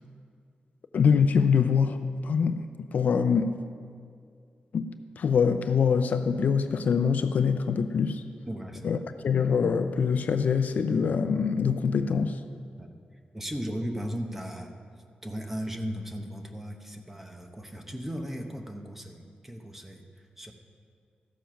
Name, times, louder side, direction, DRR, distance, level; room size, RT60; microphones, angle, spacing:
voice 1, 0.9-3.5 4.7-8.2 8.8-9.0 9.2-12.3, left 6 dB, 65° left, 9 dB, 0.5 m, -24 dB
voice 2, 8.5-9.0 11.9-12.0 12.8-12.9 13.3-14.7 15.2-20.1 20.4-20.5, equal, 10° right, 4 dB, 0.9 m, -36 dB
14.0 x 7.2 x 5.8 m, 2.2 s
wide cardioid pair, 145°, 3 cm